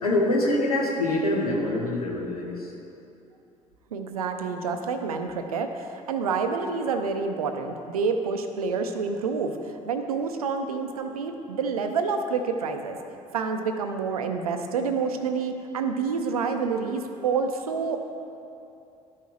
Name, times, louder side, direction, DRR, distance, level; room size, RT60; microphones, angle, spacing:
voice 1, 0.0-2.7, left 1 dB, 85° left, -2 dB, 0.9 m, -25 dB
voice 2, 3.9-13.0 13.3-18.1, right 5 dB, 80° right, 6 dB, 0.5 m, -28 dB
12.0 x 5.5 x 3.2 m, 2.7 s
figure-of-eight pair, 55°, 19 cm